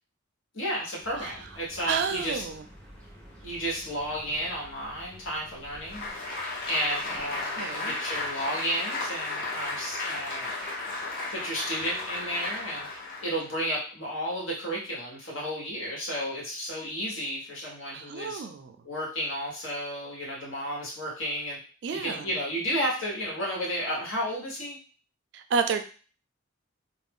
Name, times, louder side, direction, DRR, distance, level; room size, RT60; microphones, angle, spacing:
voice 1, 0.5-2.4 3.4-6.0 6.6-10.5 11.3-12.9 13.2-18.4 18.8-21.6 21.9-24.8, equal, 75° left, -3 dB, 1.2 m, -32 dB
sound 1, 1.0-6.1, equal, 5° left, 0.6 m, -50 dB
voice 2, 1.9-2.6 7.6-8.0 17.9-18.8 21.8-22.3 25.3-25.8, right 5 dB, 60° right, 7 dB, 0.3 m, -30 dB
Applause, 5.8-13.5, left 2 dB, 45° left, 0.7 m, -34 dB
2.5 x 2.0 x 3.5 m, 0.38 s
head